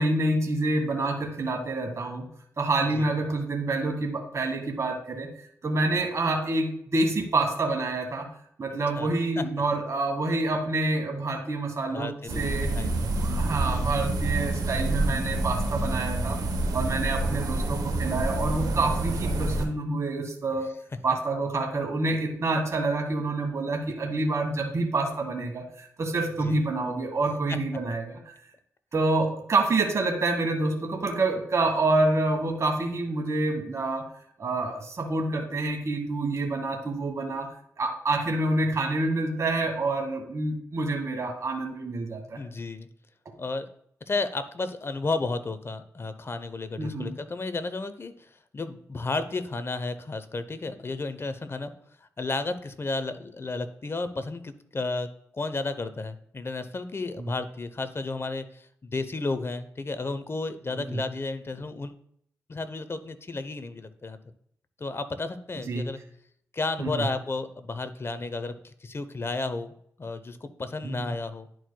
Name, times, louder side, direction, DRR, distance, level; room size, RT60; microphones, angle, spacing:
voice 1, 0.0-2.3 2.6-8.3 8.6-12.7 13.2-16.4 16.7-20.7 21.0-28.2 28.9-34.1 34.4-37.5 37.8-42.4 46.8-47.1 57.2-57.3 60.8-61.0 65.7-65.8 66.8-67.0 70.8-71.1, right 2 dB, 50° right, 2 dB, 1.4 m, -27 dB
voice 2, 11.9-12.5 12.7-13.1 26.4-26.6 27.5-27.6 42.4-42.9 43.4-43.7 44.1-51.7 52.2-55.1 55.3-62.0 62.5-64.2 64.8-66.0 66.5-69.7 70.0-71.5, left 3 dB, 40° left, 11 dB, 0.8 m, -32 dB
sound 1, 12.3-19.7, right 2 dB, 75° right, 1.0 m, -27 dB
10.5 x 4.6 x 2.3 m, 0.67 s
supercardioid pair, 45°, 7 cm